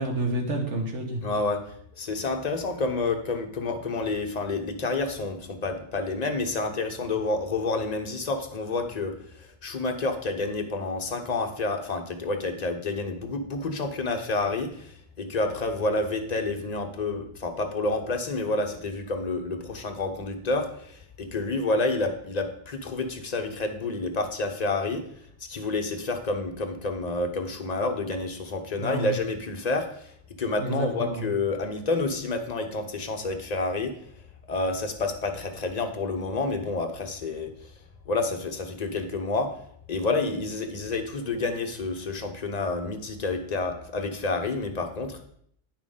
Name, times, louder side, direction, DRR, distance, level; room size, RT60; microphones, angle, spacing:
voice 1, 0.0-1.2 28.8-29.1 30.6-31.2, right 2 dB, 90° right, 1 dB, 1.6 m, -29 dB
voice 2, 1.2-1.6 2.0-25.0 25.5-30.1 30.4-33.9 34.5-37.5 38.1-39.5 39.9-45.2, left 3 dB, 40° left, 4 dB, 0.9 m, -29 dB
9.4 x 5.9 x 3.7 m, 0.66 s
omnidirectional pair, 1.2 m